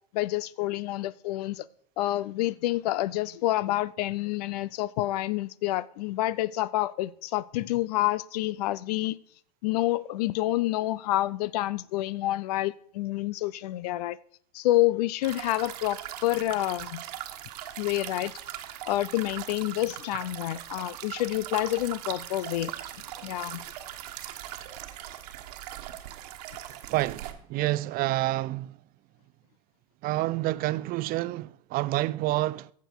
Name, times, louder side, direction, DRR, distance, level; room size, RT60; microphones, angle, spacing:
voice 1, 0.1-1.6 2.0-9.2 9.6-14.2 14.5-17.0 17.8-18.3 18.9-22.7 23.2-23.6, left 16 dB, 70° left, 0.6 m, -28 dB
sound 1, 15.2-27.3, right 12 dB, 70° right, 1.3 m, -40 dB
voice 2, 26.9-28.8 30.0-32.7, right 17 dB, 45° right, 0.5 m, -28 dB
14.5 x 6.9 x 4.7 m
hypercardioid pair, 90°, 21 cm